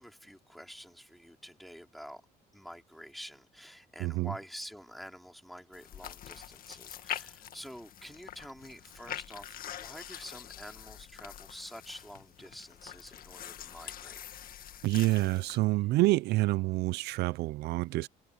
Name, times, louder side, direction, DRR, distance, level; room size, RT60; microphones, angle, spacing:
voice 1, 0.0-2.2 2.5-14.2, equal, ahead, 3.5 m, -48 dB
voice 2, 4.0-4.3 14.8-18.1, right 19 dB, 80° right, 0.5 m, -27 dB
sound 1, 5.7-15.6, left 10 dB, 60° left, 1.8 m, -45 dB
cardioid pair, 110°, 17 cm